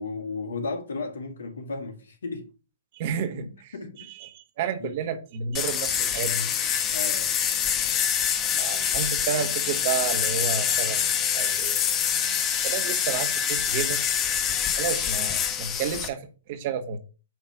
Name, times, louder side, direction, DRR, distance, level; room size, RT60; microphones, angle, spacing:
voice 1, 0.0-2.5 3.3-4.1 4.8-4.9 6.9-7.3, left 3 dB, 75° left, 1.9 m, -34 dB
voice 2, 2.9-3.5 4.2-6.8 7.8-7.9 8.6-11.0 11.3-11.8 12.6-14.0 14.8-17.0, right 7 dB, 50° right, 1.6 m, -31 dB
sound 1, 5.5-16.1, left 8 dB, 25° left, 1.0 m, -25 dB
9.4 x 3.4 x 5.9 m
hypercardioid pair, 125°, 0 cm